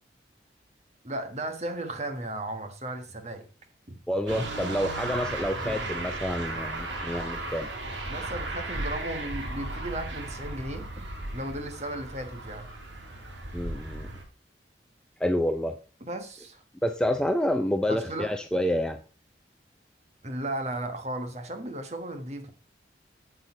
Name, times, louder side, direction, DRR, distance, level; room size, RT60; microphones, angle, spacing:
voice 1, 1.0-3.5 3.9-4.0 5.6-5.9 8.0-10.9 11.3-12.7 16.0-16.6 17.9-18.3 20.2-22.5, right 1 dB, 35° right, 1.3 m, -35 dB
voice 2, 4.1-7.7 13.5-14.1 15.2-15.8 16.8-19.0, equal, 5° left, 0.4 m, -28 dB
sound 1, 4.3-14.2, right 2 dB, 85° right, 2.1 m, -35 dB
8.8 x 8.1 x 4.1 m
head